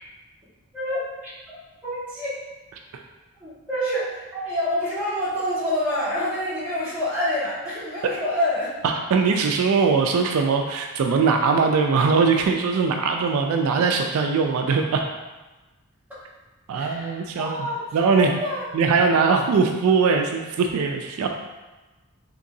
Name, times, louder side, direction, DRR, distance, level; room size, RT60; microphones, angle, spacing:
voice 1, 0.7-2.4 3.4-8.7 16.7-18.7, left 1 dB, 10° right, -12 dB, 1.3 m, -27 dB
voice 2, 8.8-15.0 16.7-17.7 17.9-18.3 18.7-21.3, right 5 dB, 75° right, 4 dB, 0.3 m, -21 dB
3.7 x 2.9 x 2.6 m, 1.2 s
head